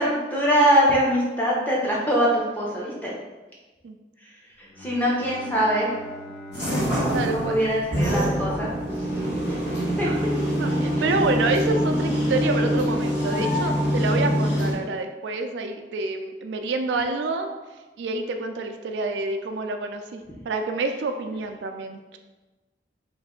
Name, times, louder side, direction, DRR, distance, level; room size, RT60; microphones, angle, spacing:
voice 1, 0.0-3.1 4.8-5.9 7.3-8.7 9.5-10.1, equal, 10° left, -5 dB, 0.7 m, -23 dB
Bowed string instrument, 4.6-9.2, right 1 dB, 60° left, 0.6 m, -42 dB
sound 1, 6.5-14.7, equal, 90° left, 1.4 m, -24 dB
voice 2, 7.1-7.6 10.0-10.2 10.6-17.5 18.0-22.2, right 3 dB, 85° right, 5 dB, 0.4 m, -28 dB
3.1 x 2.6 x 3.7 m, 1.2 s
head